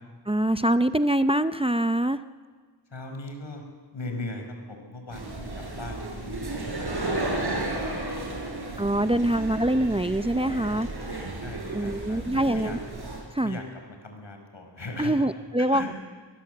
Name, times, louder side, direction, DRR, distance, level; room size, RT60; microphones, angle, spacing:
voice 1, 0.3-2.2 8.8-10.9 11.7-12.8 13.3-13.6 15.0-15.9, right 1 dB, 15° right, 11 dB, 0.6 m, -24 dB
voice 2, 2.9-3.6 3.9-6.5 6.8-7.9 8.3-8.4 9.2-9.3 11.2-12.8 13.4-13.6 14.0-15.1 15.6-15.9, left 2 dB, 75° left, 4 dB, 5.3 m, -39 dB
sound 1, 5.1-13.2, right 2 dB, 55° right, 7.2 m, -33 dB
23.5 x 21.0 x 8.0 m, 1.5 s
wide cardioid pair, 80°, 45 cm